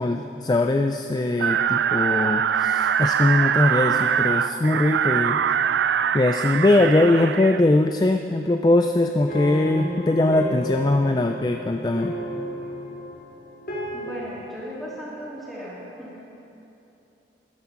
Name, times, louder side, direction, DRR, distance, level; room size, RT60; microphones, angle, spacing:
voice 1, 0.0-5.4 6.1-12.2, left 2 dB, 25° left, 5 dB, 0.3 m, -21 dB
sound 1, 1.4-7.6, right 8 dB, 85° right, 0.3 m, -23 dB
sound 2, 9.3-14.3, equal, 55° left, 2.2 m, -33 dB
voice 2, 13.9-16.2, equal, ahead, -8 dB, 3.3 m, -36 dB
13.0 x 11.5 x 6.0 m, 2.8 s
head